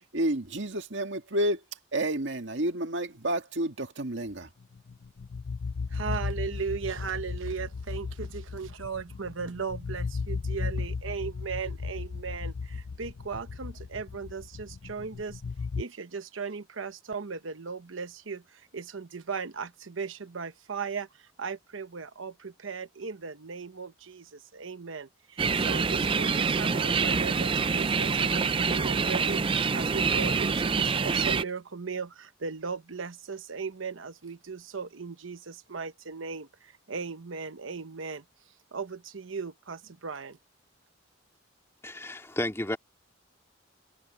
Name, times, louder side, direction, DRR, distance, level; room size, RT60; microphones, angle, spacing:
voice 1, 0.1-1.6 1.9-4.5, right 1 dB, 70° right, 1.9 m, -30 dB
sound 1, 4.7-15.8, left 4 dB, 65° left, 0.5 m, -35 dB
voice 2, 5.9-15.4 15.8-38.2 38.7-40.4, right 5 dB, 90° right, 1.0 m, -37 dB
sound 2, 25.4-31.4, right 5 dB, 25° right, 0.4 m, -26 dB
voice 3, 41.8-42.8, left 1 dB, 15° left, 2.4 m, -32 dB
head